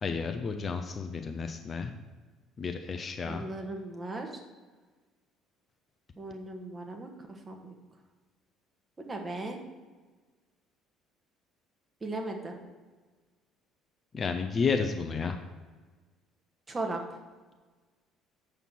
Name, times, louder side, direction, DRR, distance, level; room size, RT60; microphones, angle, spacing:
voice 1, 0.0-1.9 2.6-3.5 14.1-15.4, left 5 dB, 30° left, 6 dB, 0.6 m, -31 dB
voice 2, 3.3-4.3 6.2-7.1 7.5-7.7 9.0-9.6 12.0-12.6 16.7-17.0, right 2 dB, 25° right, 2 dB, 1.5 m, -37 dB
7.5 x 6.8 x 4.5 m, 1.4 s
figure-of-eight pair, 55°, 0 cm